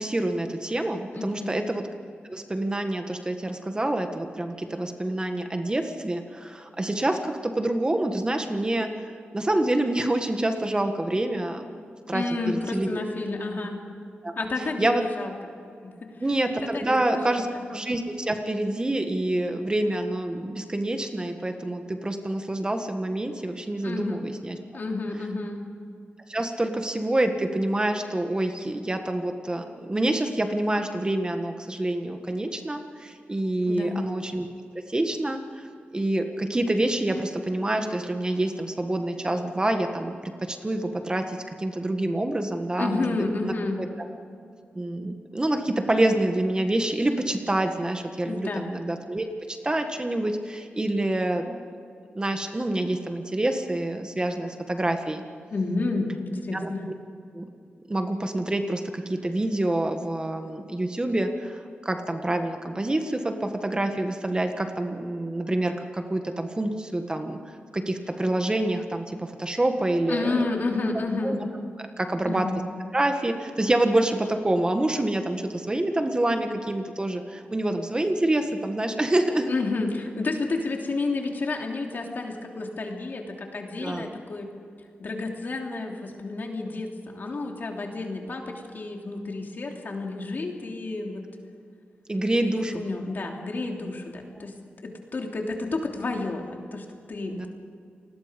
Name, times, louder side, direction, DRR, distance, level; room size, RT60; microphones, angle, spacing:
voice 1, 0.0-1.8 2.3-13.0 14.2-14.3 14.8-15.0 16.2-24.6 26.3-34.5 34.9-35.7 35.9-43.9 44.7-51.6 52.1-55.2 56.5-56.7 57.3-57.4 57.9-67.4 67.7-70.5 71.2-71.4 72.0-72.6 72.9-79.5 83.8-84.1 92.1-92.8 97.3-97.5, right 1 dB, 20° right, 5 dB, 1.6 m, -27 dB
voice 2, 1.1-1.5 12.1-13.8 14.3-15.3 16.0-16.1 16.6-17.4 23.8-24.2 24.7-25.6 33.6-34.0 42.8-43.8 48.3-48.7 55.5-56.8 70.1-71.4 72.2-72.6 79.5-84.5 85.0-91.2 92.4-94.5 94.8-97.5, left 3 dB, 55° left, 1 dB, 3.2 m, -30 dB
29.0 x 20.0 x 5.3 m, 2.5 s
wide cardioid pair, 100°, 4 cm